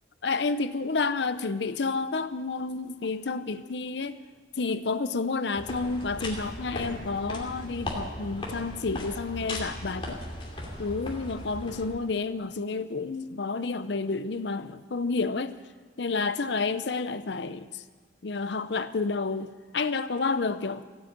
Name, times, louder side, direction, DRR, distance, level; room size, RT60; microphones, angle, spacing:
voice 1, 0.2-4.2 4.6-10.2 10.8-15.5 16.0-17.8 18.2-20.8, left 4 dB, 65° left, 13 dB, 0.7 m, -30 dB
sound 1, 5.5-11.9, left 1 dB, 30° left, 2.6 m, -37 dB
16.0 x 9.0 x 8.8 m, 1.4 s
head